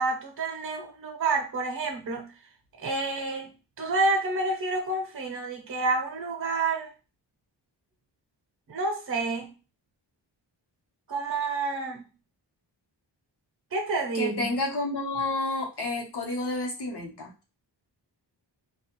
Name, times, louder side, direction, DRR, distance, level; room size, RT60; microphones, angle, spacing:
voice 1, 0.0-2.3 2.8-3.5 3.8-6.9 8.7-9.5 11.1-12.0 13.7-14.5, right 3 dB, 45° right, 0.7 m, -29 dB
voice 2, 14.1-17.3, left 2 dB, 60° left, 0.9 m, -30 dB
2.4 x 2.3 x 2.9 m
wide cardioid pair, 115°, 45 cm